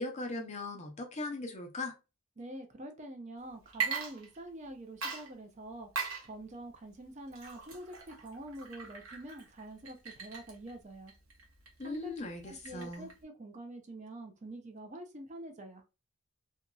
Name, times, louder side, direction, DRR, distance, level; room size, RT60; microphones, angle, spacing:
voice 1, 0.0-1.9 11.8-13.1, left 2 dB, 30° left, 0.5 m, -39 dB
voice 2, 2.4-5.9 6.2-11.1 11.8-12.1 12.4-15.8, right 1 dB, 35° right, 0.4 m, -46 dB
Water / Liquid, 3.7-4.7 5.0-13.2, right 6 dB, 65° right, 0.9 m, -41 dB
2.8 x 2.6 x 2.2 m
head